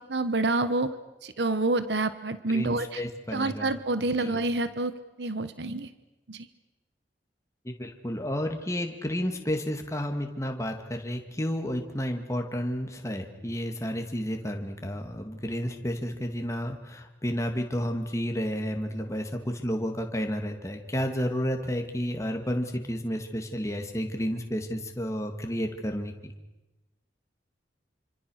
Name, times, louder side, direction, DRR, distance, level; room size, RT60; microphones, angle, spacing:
voice 1, 0.1-0.9 1.2-3.0 3.3-4.9 5.2-5.9 6.3-6.5, right 2 dB, 70° right, 12 dB, 1.1 m, -27 dB
voice 2, 2.5-3.7 4.2-4.3 7.6-26.3, equal, 15° left, 4 dB, 2.2 m, -31 dB
27.0 x 25.5 x 6.5 m, 1.0 s
head